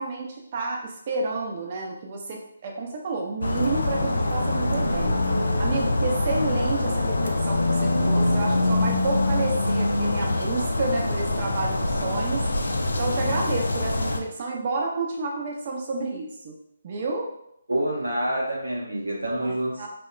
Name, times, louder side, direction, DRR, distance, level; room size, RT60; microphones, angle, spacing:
voice 1, 0.0-5.1 5.6-12.5 13.0-16.6 16.8-17.3 19.4-19.9, right 3 dB, 40° right, 0 dB, 0.3 m, -30 dB
sound 1, 3.4-14.2, left 2 dB, 80° left, 0.3 m, -24 dB
voice 2, 17.7-19.9, right 1 dB, 90° right, -1 dB, 0.6 m, -27 dB
2.7 x 2.1 x 2.3 m, 0.76 s
figure-of-eight pair, 150°, 0 cm